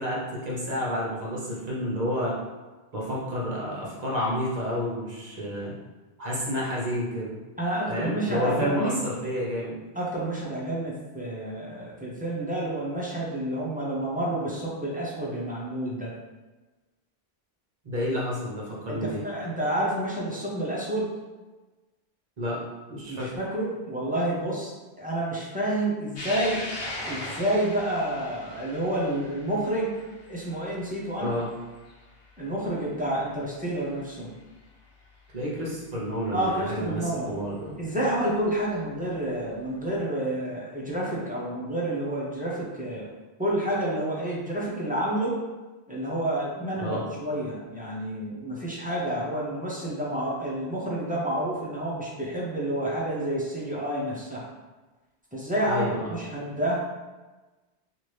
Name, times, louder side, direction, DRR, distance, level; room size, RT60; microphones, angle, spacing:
voice 1, 0.0-2.3 2.9-5.7 6.2-7.4 7.9-9.8 17.8-19.2 22.4-22.6 22.9-23.3 31.2-31.5 35.3-37.7 46.8-47.0 55.7-56.2, equal, 45° right, -5 dB, 0.9 m, -30 dB
voice 2, 7.6-9.0 10.0-16.1 18.9-21.1 23.1-26.6 27.0-29.9 30.3-31.3 32.4-34.3 36.3-37.3 37.8-43.1 43.4-45.4 45.9-54.5 55.3-56.8, right 1 dB, 10° right, -6 dB, 0.4 m, -29 dB
sound 1, 26.2-32.8 33.3-33.4 34.6-34.7 36.9-37.0 38.4-38.6, left 1 dB, 85° left, 1.1 m, -39 dB
2.9 x 2.5 x 3.2 m, 1.2 s
omnidirectional pair, 1.1 m